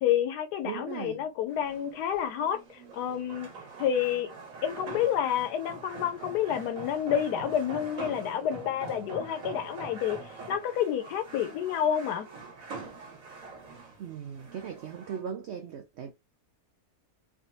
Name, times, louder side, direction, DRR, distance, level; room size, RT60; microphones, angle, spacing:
voice 1, 0.0-3.5 3.8-4.3 4.6-12.3, left 9 dB, 85° left, 1.2 m, -29 dB
voice 2, 0.6-1.2 14.0-16.1, right 7 dB, 80° right, 0.6 m, -38 dB
sound 1, 1.5-15.2, right 3 dB, 60° right, 1.3 m, -44 dB
3.4 x 2.6 x 2.7 m
omnidirectional pair, 1.7 m